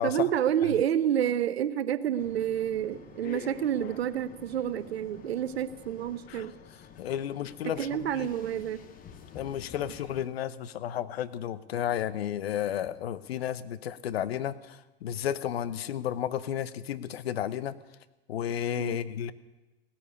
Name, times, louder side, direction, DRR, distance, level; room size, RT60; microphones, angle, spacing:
voice 1, 0.0-6.5 7.6-8.8 9.8-9.9 18.8-19.0, right 10 dB, 75° right, 14 dB, 1.0 m, -29 dB
sound 1, 2.2-10.3, left 7 dB, 25° left, 1.2 m, -48 dB
voice 2, 7.0-7.9 8.1-8.3 9.3-17.7 18.3-19.3, left 10 dB, 70° left, 16 dB, 1.0 m, -32 dB
17.0 x 8.8 x 9.6 m, 1.1 s
hypercardioid pair, 125°, 31 cm